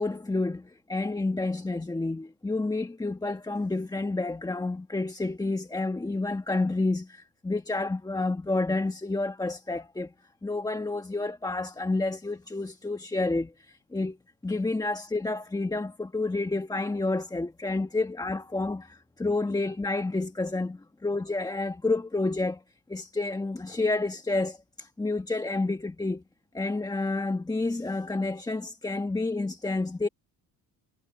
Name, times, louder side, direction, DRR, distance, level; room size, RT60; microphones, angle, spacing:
voice 1, 0.0-10.1 10.4-14.2 14.4-22.6 22.9-26.2 26.5-30.1, left 2 dB, 10° left, 1.3 m, -29 dB
cardioid pair, 105°, 38 cm